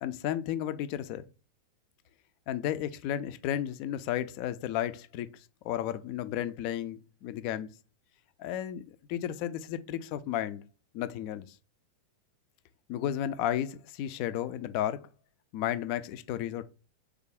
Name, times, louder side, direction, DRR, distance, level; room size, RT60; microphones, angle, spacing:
voice 1, 0.0-1.2 2.5-5.3 5.6-7.7 8.4-10.6 10.9-11.6 12.9-15.0 15.5-16.6, left 11 dB, 45° left, 0.3 m, -33 dB
3.3 x 2.4 x 3.4 m
figure-of-eight pair, 90°, 0 cm